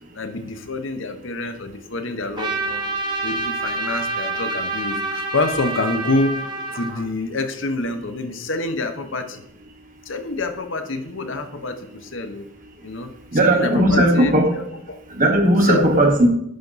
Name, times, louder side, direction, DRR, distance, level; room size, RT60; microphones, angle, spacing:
voice 1, 0.1-2.8 3.2-6.3 6.7-9.4 10.1-12.5 12.8-13.1 13.4-15.0 15.6-15.9, left 2 dB, 70° left, 8 dB, 0.9 m, -27 dB
Trumpet, 2.4-7.1, right 2 dB, 20° right, 0.9 m, -27 dB
voice 2, 13.3-14.5 15.1-16.3, right 1 dB, 40° right, 2 dB, 1.4 m, -16 dB
10.5 x 5.8 x 4.1 m, 0.75 s
head